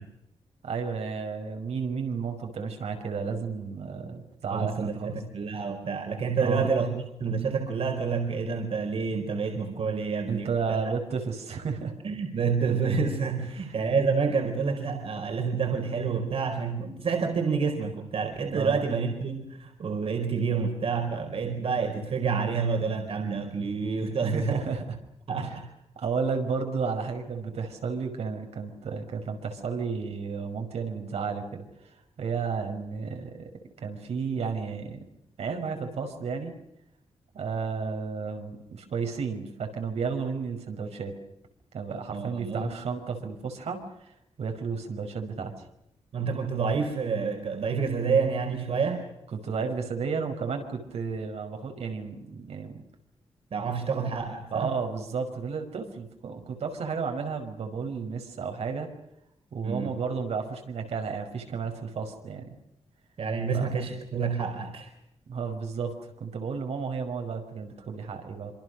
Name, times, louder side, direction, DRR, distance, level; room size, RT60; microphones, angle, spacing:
voice 1, 0.6-5.2 6.4-6.7 10.3-11.9 13.6-13.7 18.6-18.8 24.3-24.8 25.4-25.6 26.0-33.5 33.8-35.0 35.4-36.5 37.3-41.1 41.7-44.1 44.4-45.5 49.3-52.8 54.5-58.9 59.5-62.5 63.5-63.7 65.3-65.9 66.2-68.5, right 5 dB, 80° right, 4 dB, 5.3 m, -32 dB
voice 2, 4.5-10.8 12.0-24.7 25.3-25.6 42.1-42.7 46.1-49.1 53.5-54.7 59.6-59.9 63.2-64.9, right 5 dB, 65° right, 4 dB, 4.5 m, -28 dB
26.5 x 26.0 x 6.5 m, 0.81 s
wide cardioid pair, 135°, 11 cm